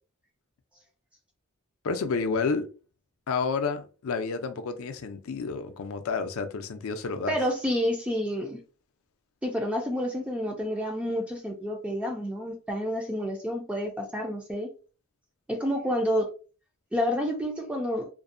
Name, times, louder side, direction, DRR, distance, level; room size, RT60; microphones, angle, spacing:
voice 1, 1.8-2.7 3.3-7.4, left 4 dB, 70° left, 0.4 m, -30 dB
voice 2, 7.3-8.6 9.4-14.7 15.5-16.3 16.9-18.1, equal, 5° right, 0.3 m, -29 dB
2.5 x 2.0 x 2.5 m
head